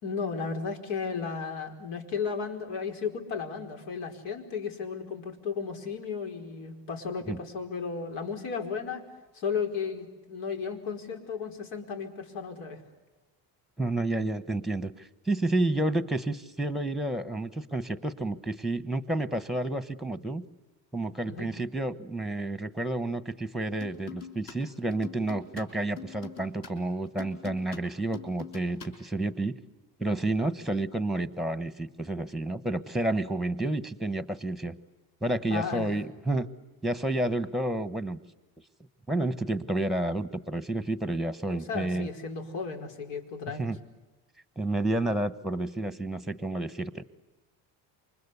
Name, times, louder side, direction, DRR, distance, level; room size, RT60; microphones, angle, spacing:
voice 1, 0.0-9.0 9.3-12.8 21.3-21.5 35.5-35.9 41.5-43.6, left 5 dB, 75° left, 5 dB, 4.9 m, -34 dB
voice 2, 13.8-14.9 15.3-20.4 20.9-29.6 30.0-34.8 35.2-36.5 36.8-38.2 39.1-42.1 43.6-43.8 44.6-47.0, right 2 dB, ahead, 13 dB, 1.2 m, -30 dB
sound 1, 23.8-24.6 24.9-28.9, left 9 dB, 50° left, 5.4 m, -44 dB
28.0 x 25.0 x 8.3 m, 1.1 s
cardioid pair, 135°, 43 cm